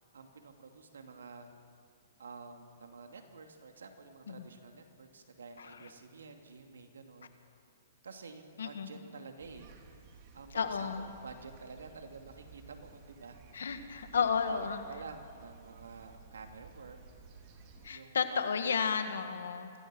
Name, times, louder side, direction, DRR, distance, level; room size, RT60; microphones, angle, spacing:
voice 1, 0.1-1.5 2.2-7.3 8.0-9.7 10.3-13.4 14.1-17.0 17.9-18.5 19.1-19.4, right 4 dB, 90° right, 5 dB, 2.5 m, -50 dB
sound 1, 9.4-17.9, right 5 dB, 40° right, 2.8 m, -55 dB
voice 2, 10.5-11.1 13.5-14.8 17.8-19.7, left 6 dB, 85° left, 8 dB, 1.9 m, -32 dB
25.0 x 16.5 x 6.3 m, 2.5 s
hypercardioid pair, 135°, 0 cm